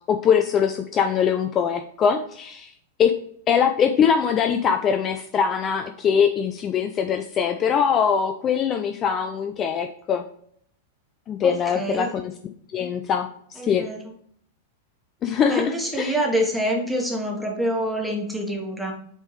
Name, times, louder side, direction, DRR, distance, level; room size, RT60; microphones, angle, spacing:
voice 1, 0.1-2.7 3.0-3.1 3.5-10.2 11.3-12.3 12.7-13.8 15.2-16.2, left 7 dB, 30° left, 7 dB, 0.4 m, -22 dB
voice 2, 11.4-12.2 13.6-14.0 15.5-18.9, equal, ahead, -1 dB, 1.4 m, -26 dB
8.0 x 3.6 x 3.3 m, 0.64 s
figure-of-eight pair, 95°, 0 cm